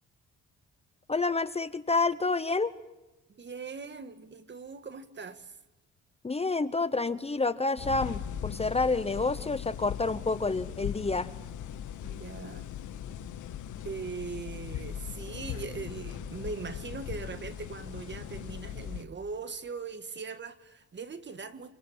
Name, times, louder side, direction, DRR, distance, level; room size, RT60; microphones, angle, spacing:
voice 1, 1.1-2.7 6.2-11.3, left 3 dB, 20° left, 0.9 m, -28 dB
voice 2, 3.3-5.6 12.0-12.7 13.8-21.7, right 5 dB, 35° right, 1.8 m, -40 dB
sound 1, 7.8-19.0, left 9 dB, 80° left, 1.6 m, -39 dB
28.0 x 22.5 x 8.8 m
cardioid pair, 90°, 30 cm